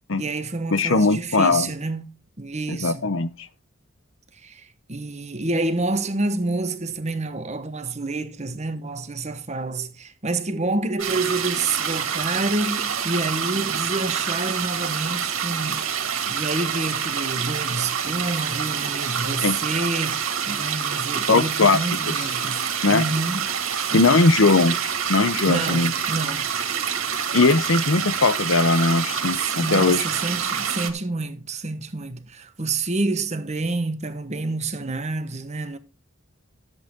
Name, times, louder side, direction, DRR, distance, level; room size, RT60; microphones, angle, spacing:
voice 1, 0.2-3.1 4.4-23.5 23.9-24.0 25.4-26.5 29.4-35.8, right 2 dB, 30° right, 1.2 m, -28 dB
voice 2, 0.7-1.7 2.7-3.3 19.4-19.6 21.3-22.1 22.8-23.0 23.9-24.8 25.1-25.9 27.3-30.0, left 3 dB, 65° left, 0.8 m, -19 dB
sound 1, 11.0-30.9, right 7 dB, 70° right, 2.2 m, -27 dB
13.5 x 8.1 x 3.6 m
head